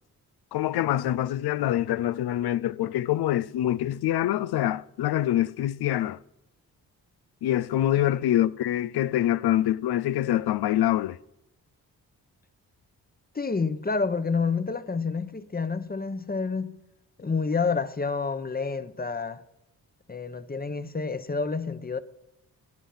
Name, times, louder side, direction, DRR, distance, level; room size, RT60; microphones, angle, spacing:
voice 1, 0.5-6.2 7.4-11.2, left 13 dB, 80° left, 0.6 m, -25 dB
voice 2, 13.3-16.7 17.2-19.4 20.1-22.0, left 4 dB, 25° left, 0.9 m, -29 dB
16.0 x 10.0 x 5.6 m
cardioid pair, 60°, 38 cm